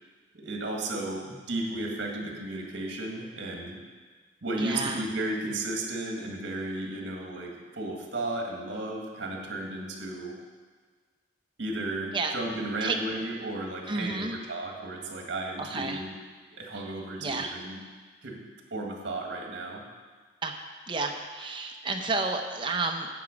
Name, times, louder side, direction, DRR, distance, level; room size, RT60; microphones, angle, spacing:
voice 1, 0.3-3.8 4.4-10.4 11.6-16.1 16.5-17.8 18.2-19.8, right 2 dB, 60° right, 0 dB, 1.7 m, -34 dB
voice 2, 4.6-5.0 12.1-12.3 12.8-13.0 13.9-14.4 15.6-16.0 17.2-17.6 20.4-20.6 20.9-23.1, right 3 dB, 25° right, 4 dB, 0.7 m, -31 dB
9.1 x 7.6 x 5.1 m, 1.5 s
head